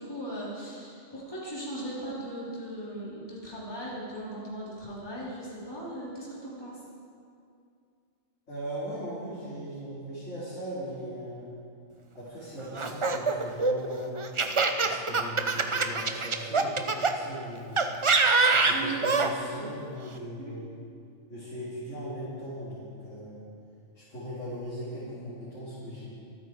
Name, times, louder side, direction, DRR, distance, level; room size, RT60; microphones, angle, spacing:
voice 1, 0.0-6.8 18.6-18.9 19.4-19.7 20.4-20.6, right 1 dB, 20° left, -7 dB, 3.4 m, -38 dB
voice 2, 8.5-11.5 12.2-14.2 14.8-17.8 18.5-20.7 21.3-23.4 23.9-26.1, equal, 70° left, -10 dB, 3.5 m, -39 dB
Laughter, 12.8-17.1 17.8-19.3, right 4 dB, 35° right, 0.6 m, -24 dB
25.0 x 9.4 x 4.6 m, 2.4 s
omnidirectional pair, 1.3 m